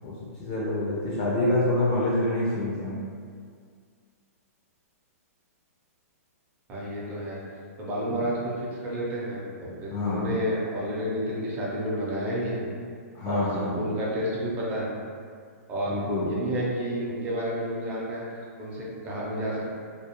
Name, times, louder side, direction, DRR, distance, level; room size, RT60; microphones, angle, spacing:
voice 1, 0.0-3.0 8.1-8.2 9.9-10.4 13.1-13.7 15.9-16.3, left 2 dB, 35° left, -5 dB, 0.4 m, -27 dB
voice 2, 6.7-7.4 7.8-12.6 13.3-14.9 15.7-16.0 16.2-18.2 18.6-19.7, equal, 20° right, -6 dB, 0.5 m, -30 dB
2.3 x 2.1 x 2.7 m, 2.1 s
hypercardioid pair, 155°, 8 cm